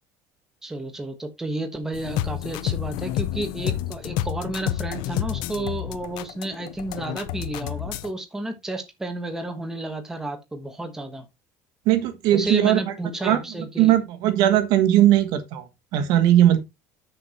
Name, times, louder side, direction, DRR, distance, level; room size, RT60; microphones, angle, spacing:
voice 1, 0.6-11.2 12.3-13.9, right 2 dB, 5° right, 1.3 m, -31 dB
sound 1, 1.9-8.1, left 13 dB, 70° left, 0.7 m, -29 dB
voice 2, 11.8-12.8 13.2-13.4 13.8-15.7 15.9-16.6, right 12 dB, 60° right, 1.4 m, -18 dB
6.9 x 6.7 x 4.3 m
cardioid pair, 170°, 8 cm